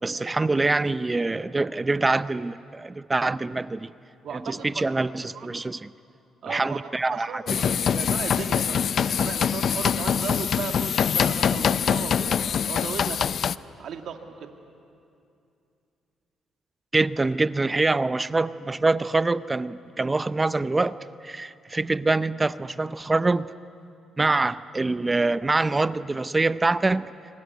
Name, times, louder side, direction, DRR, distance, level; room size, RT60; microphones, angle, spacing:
voice 1, 0.0-3.9 4.3-5.9 6.4-7.7 16.9-21.0 21.2-23.5 24.2-27.1, right 3 dB, 20° right, 15 dB, 0.6 m, -25 dB
voice 2, 4.2-4.9 5.3-5.5 6.4-6.8 7.1-12.3 12.7-13.2 13.8-14.5, right 7 dB, 70° right, 5 dB, 1.9 m, -36 dB
sound 1, 7.5-13.6, left 8 dB, 60° left, 0.6 m, -24 dB
25.0 x 25.0 x 9.5 m, 2.6 s
cardioid pair, 90°, 0 cm